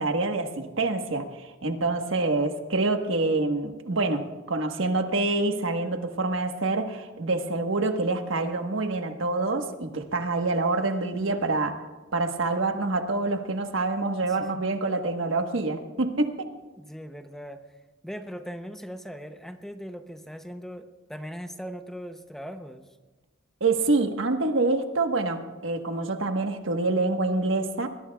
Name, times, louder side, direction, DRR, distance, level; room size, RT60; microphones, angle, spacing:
voice 1, 0.0-11.8 12.1-16.5 23.6-27.9, right 3 dB, 80° right, 6 dB, 1.3 m, -26 dB
voice 2, 16.8-17.6 18.0-22.9, equal, ahead, 7 dB, 0.6 m, -39 dB
21.0 x 21.0 x 2.3 m, 1.3 s
head